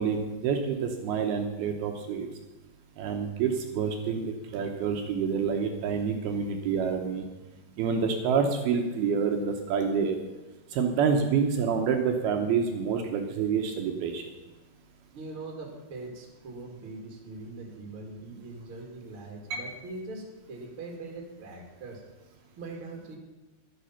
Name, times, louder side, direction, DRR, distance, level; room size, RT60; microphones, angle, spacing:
voice 1, 0.0-2.3 3.0-7.2 7.8-10.2 10.7-14.2 19.5-19.6, right 6 dB, 75° right, 4 dB, 2.5 m, -27 dB
voice 2, 15.1-22.0 22.6-23.2, right 2 dB, 45° right, 1 dB, 1.9 m, -42 dB
12.0 x 11.5 x 5.7 m, 1.1 s
omnidirectional pair, 5.2 m